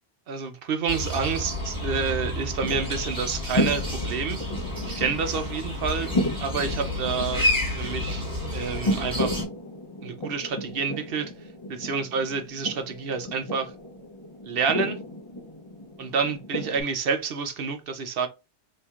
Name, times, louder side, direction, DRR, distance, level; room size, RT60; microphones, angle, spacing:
voice 1, 0.3-4.4 4.8-6.1 6.4-7.5 7.8-8.3 8.5-9.3 10.0-11.3 11.7-13.7 14.4-15.0 16.0-18.3, right 5 dB, 60° right, 0.8 m, -28 dB
sound 1, 0.9-9.4, left 1 dB, 5° left, 1.3 m, -30 dB
sound 2, 1.6-16.8, left 1 dB, 30° left, 0.7 m, -34 dB
4.3 x 2.8 x 2.4 m
omnidirectional pair, 1.2 m